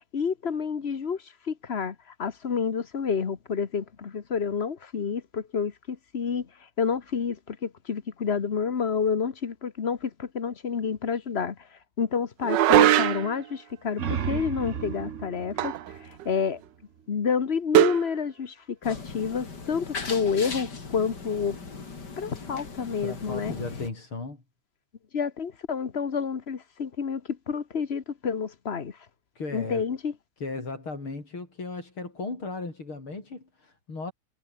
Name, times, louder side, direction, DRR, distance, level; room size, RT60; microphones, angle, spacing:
voice 1, 0.1-6.5 6.8-11.6 12.0-16.6 17.1-21.6 22.2-23.5 25.1-29.0 29.5-30.1, left 6 dB, 35° left, 1.2 m, -29 dB
sound 1, 12.4-13.4 15.6-16.0 16.2-16.3 17.8-18.1, right 13 dB, 65° right, 1.4 m, -20 dB
sound 2, 13.7-17.1, right 8 dB, 45° right, 1.2 m, -35 dB
sound 3, 18.8-23.9, left 4 dB, 55° left, 3.8 m, -38 dB
voice 2, 23.0-24.4 29.3-29.9 30.4-34.1, left 3 dB, 90° left, 6.6 m, -36 dB
omnidirectional pair, 2.2 m